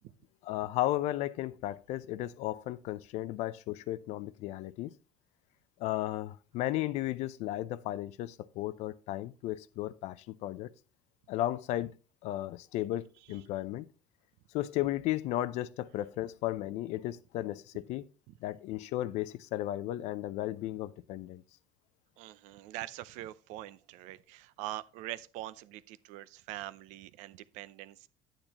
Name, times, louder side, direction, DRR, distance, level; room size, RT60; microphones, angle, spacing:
voice 1, 0.4-4.9 5.8-10.7 11.3-11.9 12.2-13.9 14.5-18.1 18.4-21.4, left 14 dB, 65° left, 0.5 m, -34 dB
voice 2, 22.2-28.1, right 15 dB, 75° right, 0.6 m, -43 dB
10.0 x 9.0 x 2.9 m
cardioid pair, 145°, 12 cm